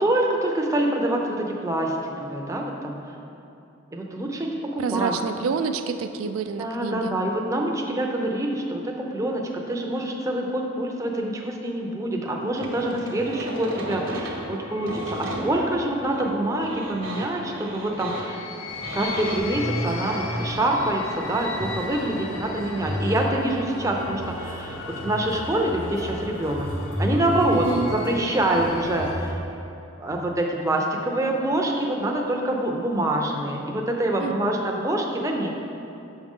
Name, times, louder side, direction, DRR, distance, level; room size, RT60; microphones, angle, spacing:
voice 1, 0.0-3.0 3.9-5.1 6.6-18.4 18.9-26.7 27.0-29.4 30.0-35.5, right 1 dB, 15° right, 0 dB, 0.5 m, -26 dB
voice 2, 4.8-7.1 27.5-27.9 34.2-34.6, right 5 dB, 90° right, 8 dB, 0.3 m, -28 dB
sound 1, 12.5-29.3, left 4 dB, 80° left, 0.6 m, -39 dB
sound 2, 12.6-19.4, right 2 dB, 70° right, 1.0 m, -35 dB
sound 3, 18.7-29.3, equal, 30° left, 0.7 m, -33 dB
6.3 x 5.7 x 3.6 m, 2.8 s
head